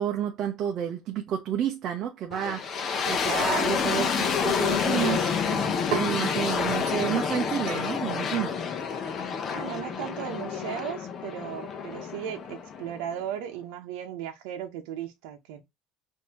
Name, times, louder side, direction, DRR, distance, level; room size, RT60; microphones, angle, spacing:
voice 1, 0.0-2.7 3.1-5.6 5.9-8.5, right 9 dB, 45° right, 0.6 m, -30 dB
sound 1, 2.3-13.2, left 6 dB, 35° left, 0.7 m, -28 dB
sound 2, 2.6-4.9 5.5-6.2 6.9-7.2 7.7-7.9, right 9 dB, 60° right, 1.0 m, -39 dB
voice 2, 9.5-15.6, right 10 dB, 85° right, 0.8 m, -36 dB
5.3 x 2.7 x 2.8 m
cardioid pair, 145°, 0 cm